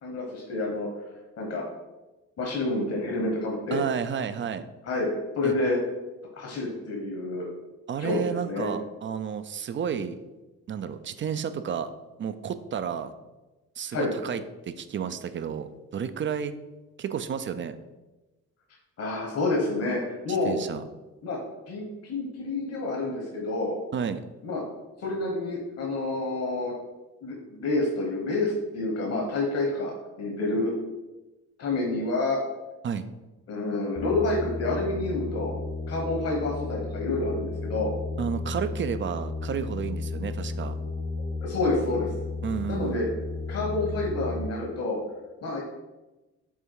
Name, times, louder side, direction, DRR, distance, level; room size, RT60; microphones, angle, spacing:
voice 1, 0.0-0.9 1.4-1.6 2.4-3.8 4.8-5.1 5.3-5.8 6.3-7.5 8.0-8.2 8.5-8.7 13.9-14.1 19.0-20.6 21.2-21.4 21.7-23.8 24.4-24.6 25.0-26.7 27.2-29.9 30.2-30.7 31.6-32.4 33.5-35.5 35.9-37.9 41.4-42.1 42.7-43.1 43.5-45.0 45.4-45.6, left 2 dB, 55° left, -1 dB, 1.3 m, -28 dB
voice 2, 3.7-4.7 5.4-5.5 7.9-10.2 10.7-11.9 12.2-13.1 13.8-16.5 17.0-17.8 20.3-20.8 23.9-24.2 32.8-33.1 38.2-40.8 42.4-43.0, right 7 dB, 40° right, 11 dB, 0.5 m, -31 dB
sound 1, 34.0-44.5, left 3 dB, 40° left, 0.8 m, -34 dB
5.5 x 3.7 x 4.6 m, 1.1 s
cardioid pair, 90°, 30 cm